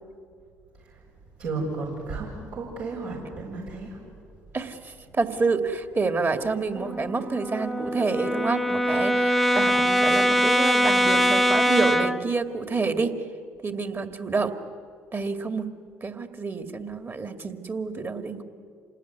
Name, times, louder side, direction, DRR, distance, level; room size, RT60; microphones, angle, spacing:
voice 1, 1.4-4.0, right 3 dB, 75° right, -4 dB, 6.3 m, -33 dB
voice 2, 4.5-13.2 13.6-14.5 15.1-15.7 16.0-18.4, right 4 dB, 35° right, 8 dB, 2.4 m, -28 dB
Brass instrument, 6.8-12.3, equal, ahead, 1.0 m, -22 dB
27.5 x 19.0 x 9.6 m, 2.2 s
hypercardioid pair, 55°, 7 cm